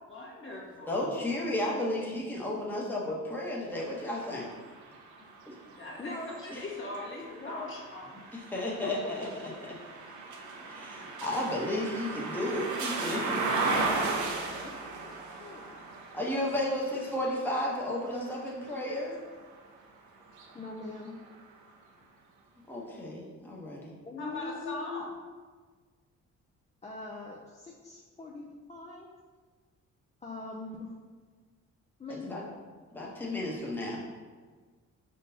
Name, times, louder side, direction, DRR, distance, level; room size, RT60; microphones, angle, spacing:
voice 1, 0.1-1.3 5.8-8.1 24.2-25.1, left 2 dB, 40° left, -3 dB, 1.4 m, -41 dB
voice 2, 0.9-4.5 5.5-5.6 6.5-6.6 8.3-9.7 10.7-13.7 16.1-19.2 22.7-23.9 32.3-32.4 32.9-34.0, left 1 dB, 5° left, -4 dB, 0.9 m, -33 dB
sound 1, 3.7-19.6 20.2-21.4, right 3 dB, 80° right, 0.8 m, -37 dB
voice 3, 6.0-6.4 7.4-7.7 8.8-8.9 9.2-9.3 13.7-15.8 20.5-21.1 24.1-25.1 26.8-29.1 30.2-31.0 32.0-32.4, left 3 dB, 20° left, -2 dB, 0.5 m, -42 dB
4.9 x 3.7 x 2.7 m, 1.5 s
cardioid pair, 90°, 30 cm